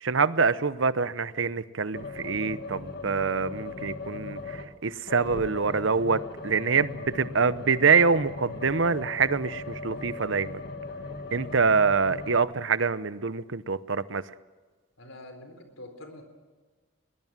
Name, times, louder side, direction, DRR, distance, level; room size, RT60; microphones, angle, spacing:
voice 1, 0.0-10.6 11.3-14.2, right 5 dB, 70° right, 15 dB, 0.8 m, -25 dB
sound 1, 1.9-4.8 5.1-12.4, left 3 dB, 55° left, 1.8 m, -38 dB
voice 2, 15.0-16.2, left 1 dB, 80° left, 6 dB, 4.1 m, -45 dB
22.0 x 20.0 x 7.5 m, 1.3 s
head